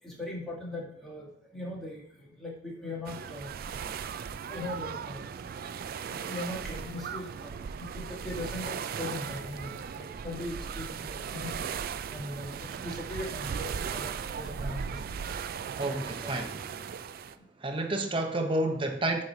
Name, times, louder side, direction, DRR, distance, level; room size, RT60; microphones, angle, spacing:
voice 1, 0.0-3.5 3.9-4.0 4.4-5.3 5.8-11.5 11.9-15.0 15.5-16.5 17.3-17.5, left 1 dB, ahead, -4 dB, 1.8 m, -40 dB
sound 1, 3.1-17.4, right 7 dB, 50° right, 0.3 m, -37 dB
voice 2, 15.8-16.6 17.6-19.2, right 1 dB, 25° right, 4 dB, 0.8 m, -30 dB
7.4 x 3.2 x 5.6 m, 0.65 s
head